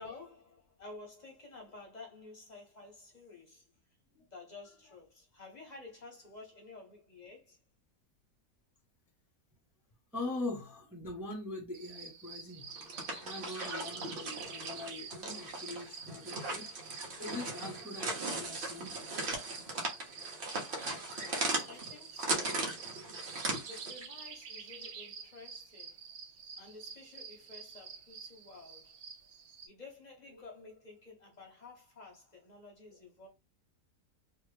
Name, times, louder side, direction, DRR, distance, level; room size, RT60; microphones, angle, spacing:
voice 1, 0.0-3.7 4.3-7.6 21.6-22.7 23.6-26.0 26.6-29.0 29.7-33.3, left 3 dB, 50° left, 0.5 m, -52 dB
voice 2, 10.1-12.7 13.2-16.7 17.2-19.4 22.2-22.3 30.3-30.4, left 2 dB, ahead, 0.6 m, -42 dB
sound 1, 11.7-29.7, right 6 dB, 70° right, 1.1 m, -48 dB
sound 2, 12.7-24.0, right 2 dB, 45° right, 0.8 m, -38 dB
3.1 x 2.2 x 3.2 m
omnidirectional pair, 1.8 m